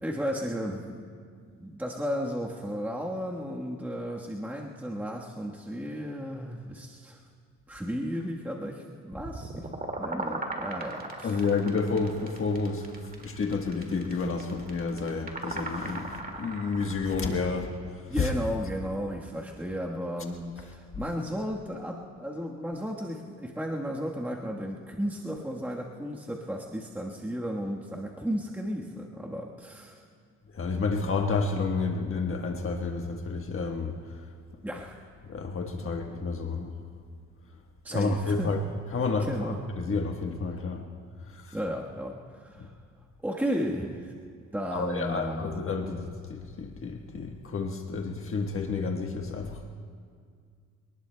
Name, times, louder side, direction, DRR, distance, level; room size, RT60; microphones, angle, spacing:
voice 1, 0.0-1.1 1.6-7.2 7.7-9.7 10.0-11.4 18.1-30.0 34.6-35.0 37.8-38.5 39.2-39.6 41.5-42.7 43.2-44.1 44.5-45.5, equal, 5° right, -2 dB, 1.3 m, -34 dB
sound 1, 9.1-17.2, right 2 dB, 30° right, 2.1 m, -38 dB
voice 2, 11.2-18.3 30.5-34.2 35.2-36.7 37.9-38.6 38.9-40.9 41.3-41.6 42.6-42.7 44.7-49.8, left 4 dB, 45° left, 2 dB, 1.4 m, -30 dB
25.5 x 19.5 x 2.3 m, 2.1 s
cardioid pair, 90°, 30 cm